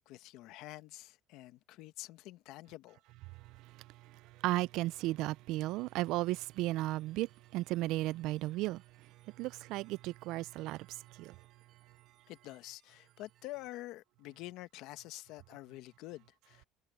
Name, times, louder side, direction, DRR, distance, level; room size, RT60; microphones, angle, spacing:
voice 1, 0.0-3.0 12.3-16.6, left 17 dB, 70° left, 1.1 m, -48 dB
voice 2, 4.4-8.8 9.4-11.3, right 18 dB, 70° right, 0.3 m, -34 dB
sound 1, 5.7-13.8, right 11 dB, 45° right, 5.6 m, -73 dB
cardioid pair, 140°, 0 cm